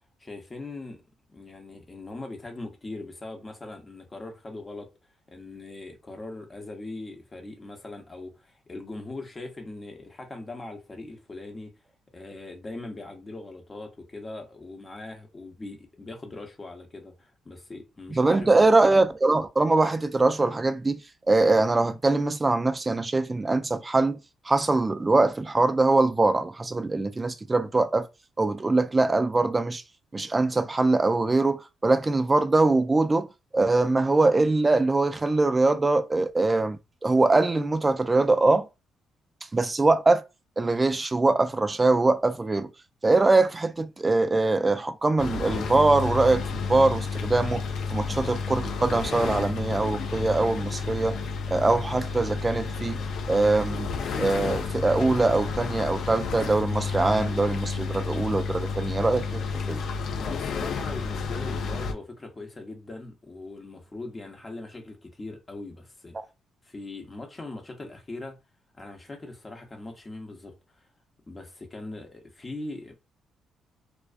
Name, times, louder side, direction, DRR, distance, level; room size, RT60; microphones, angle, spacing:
voice 1, 0.2-1.0 1.3-4.9 5.3-11.7 12.1-18.8 60.2-66.1 66.6-68.4 68.8-70.9 71.3-72.9, left 2 dB, 25° left, 0.7 m, -40 dB
voice 2, 18.1-21.0 21.3-24.2 24.5-28.1 28.4-29.8 30.1-33.3 33.5-38.6 39.5-40.2 40.6-42.7 43.0-47.6 47.9-51.2 51.5-53.0 53.3-53.9 54.2-59.4 59.7-59.8, right 3 dB, 20° right, 0.3 m, -22 dB
sound 1, 45.2-61.9, left 5 dB, 70° left, 0.4 m, -31 dB
2.3 x 2.3 x 2.4 m
cardioid pair, 90°, 0 cm